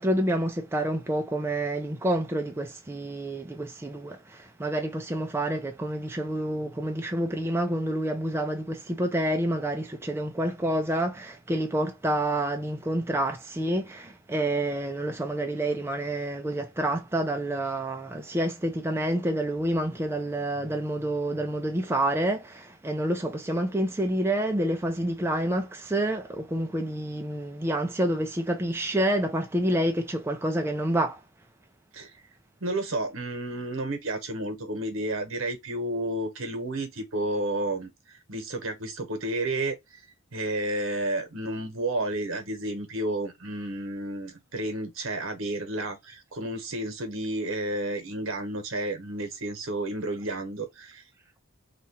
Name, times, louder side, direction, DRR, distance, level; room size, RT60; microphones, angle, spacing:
voice 1, 0.0-31.2, right 1 dB, 10° right, 0.4 m, -28 dB
voice 2, 32.6-40.0 40.3-51.0, right 1 dB, 65° right, 1.0 m, -31 dB
2.9 x 2.3 x 4.2 m
head